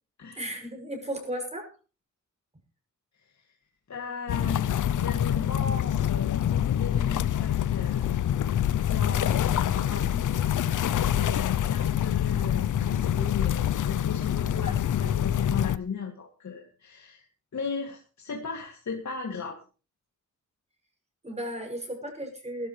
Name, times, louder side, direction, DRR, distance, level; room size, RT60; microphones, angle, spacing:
voice 1, 0.4-1.7 21.2-22.7, right 1 dB, 20° right, 3 dB, 6.6 m, -35 dB
voice 2, 3.9-4.7 5.0-8.2 8.9-10.4 10.9-17.3 17.5-19.6, left 5 dB, 65° left, 1 dB, 2.5 m, -36 dB
sound 1, 4.3-15.8, left 10 dB, 80° left, 0.7 m, -26 dB
20.0 x 12.5 x 3.2 m, 0.34 s
wide cardioid pair, 110°, 30 cm